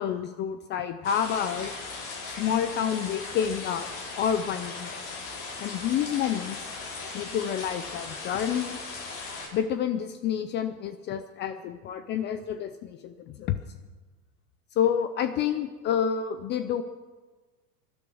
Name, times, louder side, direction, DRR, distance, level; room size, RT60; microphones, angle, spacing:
voice 1, 0.0-1.7 2.3-3.9 4.2-5.0 5.6-6.6 7.1-8.8 9.5-13.6 14.8-16.8, left 8 dB, 25° left, 11 dB, 0.4 m, -29 dB
sound 1, 1.0-9.5, left 4 dB, 55° left, 5.1 m, -38 dB
19.0 x 12.0 x 6.2 m, 1.3 s
supercardioid pair, 145°, 44 cm